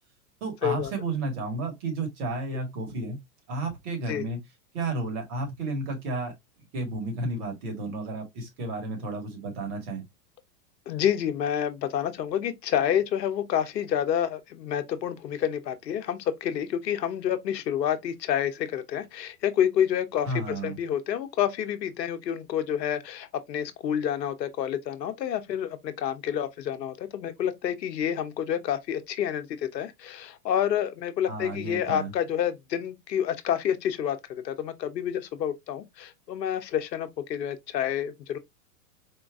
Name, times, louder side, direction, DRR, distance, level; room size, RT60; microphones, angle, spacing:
voice 1, 0.4-3.2 3.5-4.4 4.7-6.3 6.7-10.0 20.3-20.8 31.3-32.1, right 2 dB, 45° right, 1.8 m, -32 dB
voice 2, 10.9-38.4, left 9 dB, 85° left, 0.8 m, -28 dB
4.4 x 2.3 x 2.4 m
hypercardioid pair, 125°, 49 cm